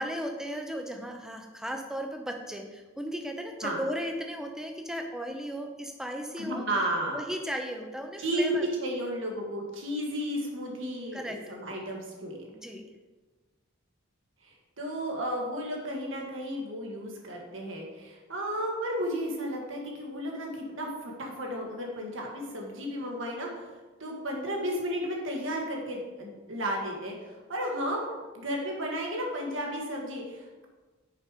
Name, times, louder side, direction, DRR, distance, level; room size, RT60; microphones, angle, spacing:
voice 1, 0.0-6.6 7.1-8.7 11.1-11.5 12.5-12.8, equal, 5° right, 3 dB, 0.6 m, -36 dB
voice 2, 6.4-7.2 8.2-12.5 14.4-23.7 24.0-30.7, equal, 65° right, 0 dB, 1.6 m, -33 dB
6.5 x 5.2 x 5.0 m, 1.3 s
head